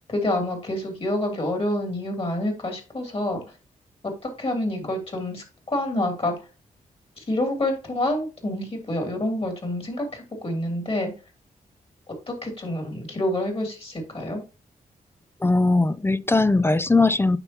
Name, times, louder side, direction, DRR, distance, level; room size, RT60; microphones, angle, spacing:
voice 1, 0.0-3.4 4.0-6.4 7.2-11.1 12.1-14.4, left 1 dB, 40° left, 3.0 m, -28 dB
voice 2, 15.4-17.4, left 3 dB, 15° left, 0.4 m, -19 dB
8.9 x 5.6 x 2.9 m
cardioid pair, 75°, 15 cm